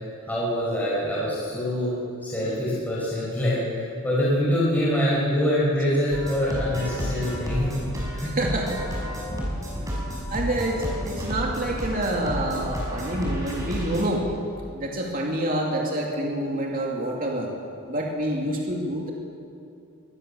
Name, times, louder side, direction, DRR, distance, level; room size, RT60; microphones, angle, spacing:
voice 1, 0.3-1.9 2.2-7.8 8.2-8.3, equal, 10° left, -7 dB, 5.6 m, -24 dB
sound 1, 6.1-14.0, equal, 15° right, 5.9 m, -31 dB
voice 2, 8.3-8.8 10.3-14.3 14.7-17.5 17.9-19.1, right 1 dB, 40° right, -1 dB, 2.8 m, -27 dB
23.5 x 20.5 x 7.2 m, 2.6 s
head